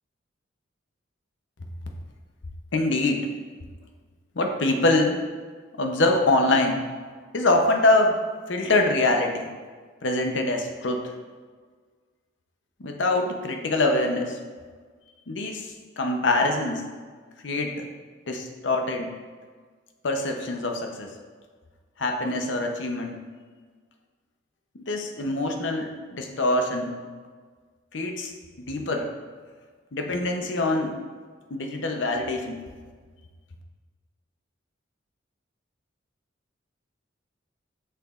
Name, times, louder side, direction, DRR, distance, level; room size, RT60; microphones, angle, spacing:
voice 1, 2.7-3.3 4.4-5.2 5.8-6.8 7.3-8.2 8.5-9.5 10.0-11.1 12.8-14.4 15.3-16.8 17.4-17.9 18.3-19.1 20.0-21.1 22.0-23.2 24.7-27.0 27.9-28.3 28.7-29.1 29.9-31.0 31.5-32.6, left 2 dB, 70° left, 3 dB, 0.7 m, -24 dB
6.9 x 5.9 x 2.4 m, 1.5 s
head